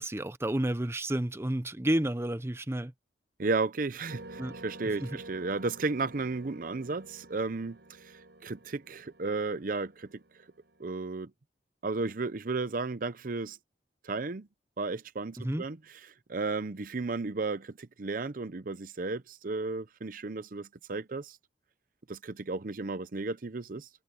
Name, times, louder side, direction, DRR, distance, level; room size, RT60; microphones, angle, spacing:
voice 1, 0.0-2.9 4.4-4.6 5.0-5.2 15.4-15.6, right 1 dB, 15° right, 0.7 m, -31 dB
voice 2, 3.4-10.2 10.8-11.3 11.8-13.6 14.0-14.5 14.8-15.8 16.3-21.4 22.1-23.9, right 3 dB, 50° right, 0.7 m, -34 dB
sound 1, 4.1-11.1, right 2 dB, 85° right, 4.2 m, -50 dB
head